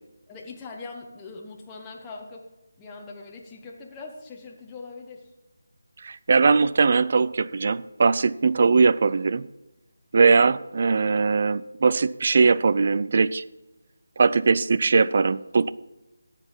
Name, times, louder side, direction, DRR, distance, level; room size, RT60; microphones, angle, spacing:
voice 1, 0.3-2.5 2.8-5.3, left 3 dB, 15° left, -1 dB, 1.1 m, -41 dB
voice 2, 6.0-9.5 10.1-13.4 14.2-15.7, right 4 dB, 45° right, 17 dB, 0.4 m, -20 dB
12.5 x 8.2 x 5.5 m, 1.0 s
figure-of-eight pair, 160°, 0 cm